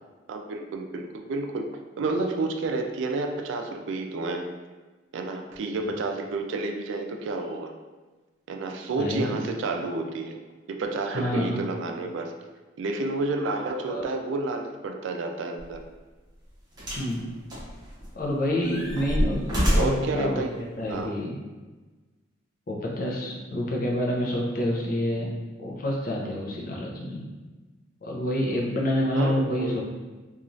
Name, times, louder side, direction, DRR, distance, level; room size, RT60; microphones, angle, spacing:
voice 1, 0.3-1.7 2.0-4.5 5.1-7.7 8.5-10.4 10.7-12.3 12.8-15.8 19.8-20.6 20.9-21.1 29.1-29.8, right 3 dB, 75° right, 4 dB, 0.3 m, -30 dB
voice 2, 9.0-9.4 11.1-11.6 13.9-14.1 16.9-17.2 18.1-20.4 20.8-21.4 22.7-25.3 25.6-27.2 28.0-29.9, left 1 dB, 45° left, -2 dB, 0.5 m, -28 dB
sound 1, 15.6-15.8 16.8-17.1 17.5-18.2 18.6-20.1 21.0-21.1, equal, 20° right, 0.8 m, -26 dB
3.0 x 2.3 x 2.6 m, 1.3 s
head